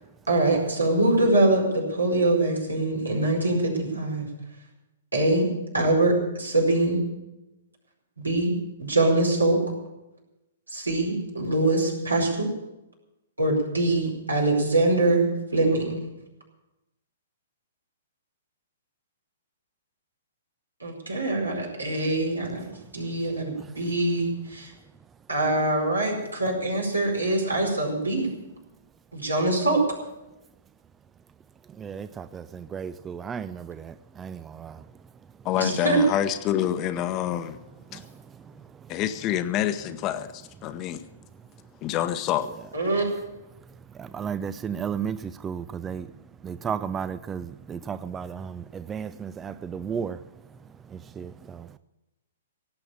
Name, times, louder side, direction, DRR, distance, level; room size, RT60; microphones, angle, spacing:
voice 1, 0.3-4.3 5.1-5.5 5.7-7.0 8.2-8.5 8.8-9.6 10.7-12.5 13.4-15.9 20.8-22.6 22.9-24.7 25.3-28.3 29.1-29.8 35.5-36.0 42.7-43.0, right 2 dB, 90° right, 4.7 m, -23 dB
voice 2, 31.8-34.8 44.0-46.1 46.4-50.2 51.2-51.6, right 7 dB, 15° right, 0.4 m, -33 dB
voice 3, 35.4-37.6 37.9-38.0 38.9-41.0 41.8-42.5, left 11 dB, 30° left, 0.9 m, -27 dB
17.5 x 7.8 x 8.6 m
figure-of-eight pair, 115°, 0 cm